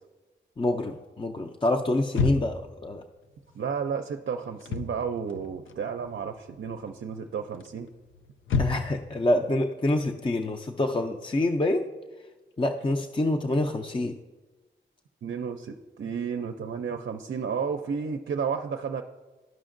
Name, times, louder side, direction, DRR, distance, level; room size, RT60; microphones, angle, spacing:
voice 1, 0.6-3.0 8.6-11.9 12.6-14.2, left 1 dB, 25° left, 4 dB, 0.5 m, -26 dB
sound 1, 2.1-2.7 4.5-5.0 5.3-6.2 6.5-6.9 7.6-9.1, left 4 dB, 85° left, 0.4 m, -29 dB
voice 2, 3.5-7.9 15.2-19.0, right 6 dB, 65° right, 5 dB, 0.4 m, -32 dB
12.5 x 5.1 x 2.5 m, 1.2 s
cardioid pair, 40°, 20 cm